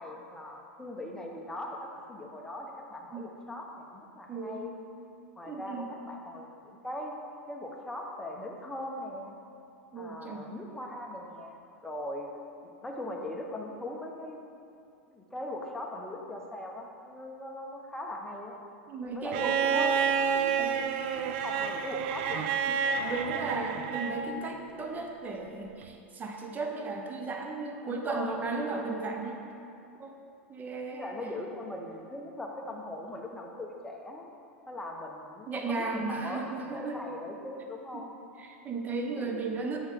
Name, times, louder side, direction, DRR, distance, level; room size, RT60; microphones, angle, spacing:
voice 1, 0.0-4.8 5.4-7.2 7.5-9.3 10.0-14.4 15.1-18.6 19.1-20.6 21.2-22.6 27.9-28.4 28.7-28.8 30.9-34.3 34.7-38.1 39.2-39.8, left 1 dB, 10° left, 0 dB, 1.0 m, -40 dB
voice 2, 4.3-4.7 5.5-5.9 9.9-10.4 18.9-20.0 20.6-20.8 22.3-29.5 30.0-30.2 30.5-31.1 35.5-37.0 37.9-38.1 38.4-39.8, right 3 dB, 25° right, 3 dB, 0.9 m, -35 dB
Bowed string instrument, 19.3-24.4 25.8-25.9, right 7 dB, 55° right, 0.4 m, -29 dB
7.9 x 6.2 x 3.6 m, 2.6 s
figure-of-eight pair, 90°, 7 cm